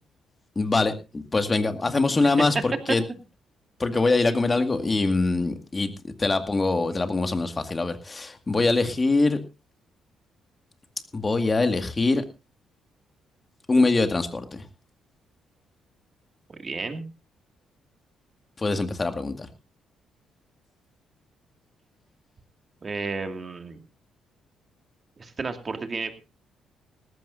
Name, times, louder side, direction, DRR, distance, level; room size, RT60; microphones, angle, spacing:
voice 1, 0.6-3.0 3.8-9.4 11.1-12.2 13.7-14.6 18.6-19.5, left 3 dB, 25° left, 8 dB, 2.0 m, -23 dB
voice 2, 16.5-17.0 22.8-23.8 25.2-26.1, right 4 dB, 35° right, 7 dB, 2.3 m, -32 dB
18.5 x 14.5 x 2.7 m, 0.29 s
cardioid pair, 90°, 0 cm